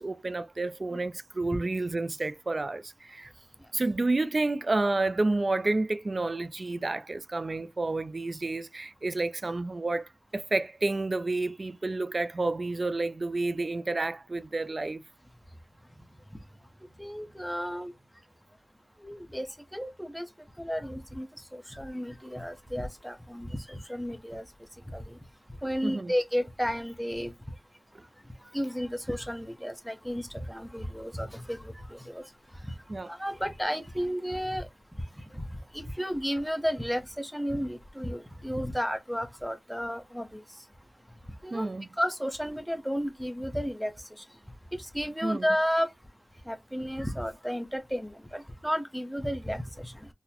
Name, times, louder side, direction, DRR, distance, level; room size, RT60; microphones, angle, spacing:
voice 1, 0.0-3.3 3.7-15.0 25.8-26.1 32.9-33.1 41.5-41.9 45.2-45.5, right 2 dB, 55° right, 0.3 m, -30 dB
voice 2, 17.0-17.9 19.0-19.5 19.7-20.3 20.6-21.3 21.5-24.4 24.9-25.2 25.6-27.3 28.5-32.3 32.6-32.7 33.1-34.7 35.3-40.4 41.4-41.7 41.9-44.1 44.7-45.9 46.5-50.1, equal, ahead, 0.7 m, -33 dB
3.9 x 2.1 x 2.8 m
wide cardioid pair, 55°, 0 cm